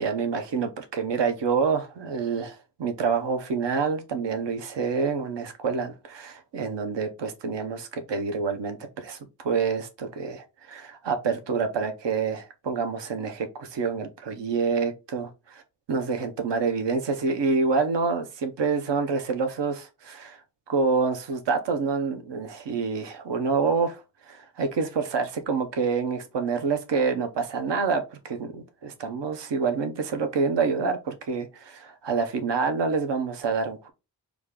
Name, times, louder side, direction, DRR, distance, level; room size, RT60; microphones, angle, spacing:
voice 1, 0.0-15.3 15.9-20.4 20.7-24.0 24.3-33.9, right 5 dB, 80° right, 0.8 m, -27 dB
5.0 x 2.4 x 3.7 m
cardioid pair, 60°, 42 cm